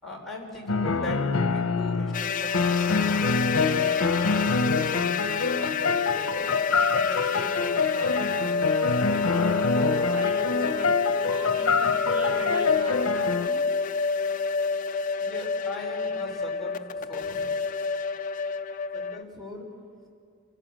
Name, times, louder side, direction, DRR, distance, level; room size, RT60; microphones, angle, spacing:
voice 1, 0.0-9.1 15.1-17.5 18.9-19.7, left 1 dB, ahead, -4 dB, 4.2 m, -40 dB
sound 1, 0.7-13.5, left 4 dB, 75° left, 1.0 m, -25 dB
sound 2, 2.1-19.2, left 4 dB, 40° left, 0.5 m, -29 dB
voice 2, 9.7-13.6 19.3-19.4, right 1 dB, 65° right, 2 dB, 2.8 m, -39 dB
27.5 x 16.0 x 7.6 m, 2.3 s
head